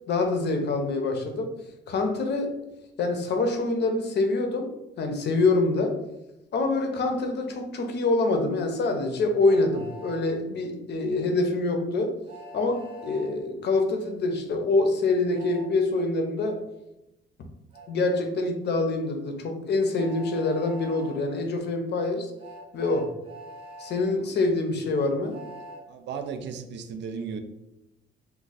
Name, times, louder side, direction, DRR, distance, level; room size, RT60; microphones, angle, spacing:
voice 1, 0.1-1.5 1.9-2.5 3.0-4.7 5.0-6.0 6.5-12.2 12.5-16.6 17.9-22.3 22.7-23.1 23.8-25.4, left 3 dB, 60° left, 4 dB, 0.6 m, -25 dB
Train, 9.4-10.2 12.3-13.3 15.3-15.7 17.7-17.9 19.9-21.2 22.4-24.0 25.3-25.8, right 1 dB, 30° right, 0.7 m, -43 dB
voice 2, 25.9-27.4, right 6 dB, 65° right, 8 dB, 0.4 m, -35 dB
2.5 x 2.2 x 4.0 m, 0.91 s
cardioid pair, 90°, 20 cm